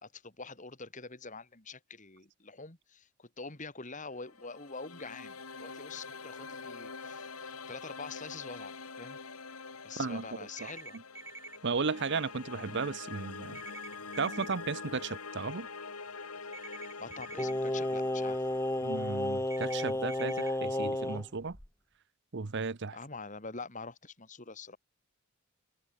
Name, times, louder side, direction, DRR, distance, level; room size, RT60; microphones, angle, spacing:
voice 1, 0.0-9.2 9.8-11.0 17.0-18.4 22.9-24.8, left 4 dB, 35° left, 2.9 m, -45 dB
sound 1, 4.0-21.1, left 4 dB, 80° left, 3.0 m, -46 dB
sound 2, 10.6-11.6 13.5-14.5 16.5-17.5 19.5-20.5, right 3 dB, 10° right, 3.1 m, -46 dB
voice 2, 11.6-13.6 14.2-15.7 18.8-21.6 22.3-23.0, right 4 dB, 50° right, 0.8 m, -34 dB
Singing, 17.4-21.2 21.5-21.7, left 1 dB, 10° left, 1.7 m, -32 dB
head